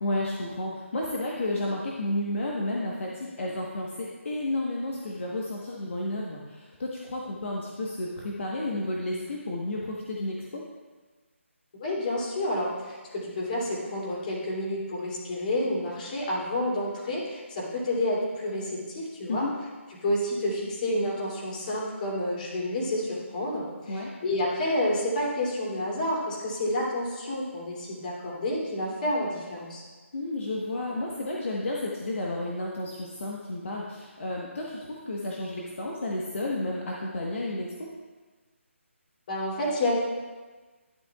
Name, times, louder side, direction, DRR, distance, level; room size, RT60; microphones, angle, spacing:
voice 1, 0.0-10.6 19.3-19.5 23.9-24.1 30.1-37.9, left 1 dB, 65° left, -3 dB, 1.3 m, -32 dB
voice 2, 11.8-19.4 20.0-29.8 39.3-39.9, left 1 dB, 40° left, -5 dB, 2.9 m, -29 dB
11.0 x 9.2 x 2.4 m, 1.3 s
figure-of-eight pair, 155°, 7 cm